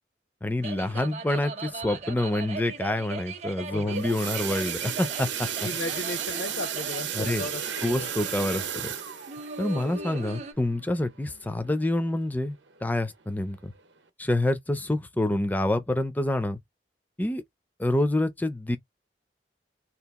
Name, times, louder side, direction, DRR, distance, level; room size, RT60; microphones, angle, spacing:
voice 1, 0.4-5.5 7.1-7.5 7.8-8.9 9.6-13.7 14.2-16.6 17.2-17.4 17.8-18.8, left 1 dB, 10° left, 0.4 m, -27 dB
sound 1, 0.6-10.5, right 4 dB, 35° right, 0.6 m, -39 dB
sound 2, 3.6-12.2 12.7-12.9 13.2-13.3 13.8-13.9, right 8 dB, 75° right, 0.7 m, -35 dB
voice 2, 5.6-7.6 7.9-8.1, left 2 dB, 60° left, 0.6 m, -35 dB
2.9 x 2.4 x 3.5 m
head